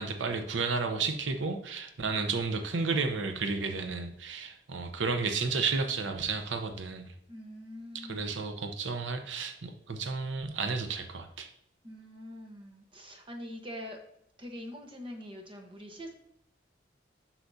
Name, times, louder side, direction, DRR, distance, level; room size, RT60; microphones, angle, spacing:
voice 1, 0.0-7.1 8.1-11.5, right 4 dB, 85° right, 6 dB, 0.7 m, -32 dB
voice 2, 7.3-8.6 11.8-14.0 14.4-16.1, equal, 30° right, 3 dB, 1.0 m, -44 dB
7.9 x 6.0 x 2.7 m, 0.75 s
head